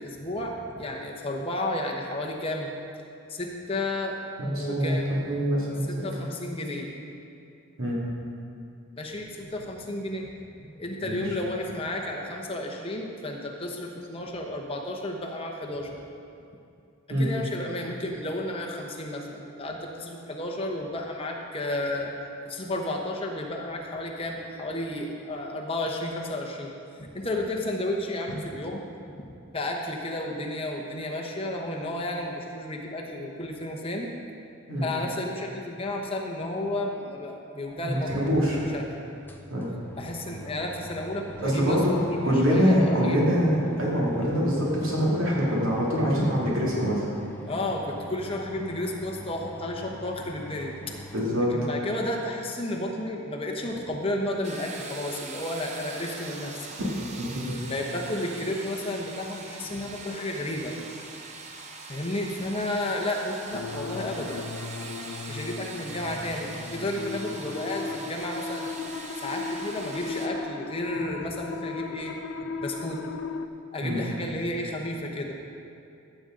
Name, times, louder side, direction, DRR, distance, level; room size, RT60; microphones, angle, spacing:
voice 1, 0.0-2.7 3.3-4.2 4.6-5.2 5.9-6.9 9.0-10.3 10.8-16.0 17.2-22.2 22.4-34.1 34.8-39.0 40.0-43.3 47.5-50.9 51.5-56.8 57.7-60.7 61.9-64.4 65.3-68.7 69.2-72.2 72.6-73.0 73.7-75.4, left 1 dB, 25° left, 0 dB, 0.9 m, -32 dB
voice 2, 4.4-5.9 6.2-6.3 7.8-8.0 11.0-11.2 17.1-17.3 34.7-34.9 37.8-38.6 39.5-39.7 41.4-41.9 42.2-47.1 51.1-51.5 56.8-56.9 57.2-57.5 73.8-74.0, equal, 70° right, -6 dB, 2.4 m, -24 dB
sound 1, 39.1-51.2, equal, 10° left, 0.4 m, -44 dB
sound 2, 54.4-70.3, right 3 dB, 30° right, 0.7 m, -42 dB
sound 3, 63.5-73.5, left 4 dB, 80° left, 0.5 m, -36 dB
15.0 x 7.7 x 3.8 m, 2.6 s
head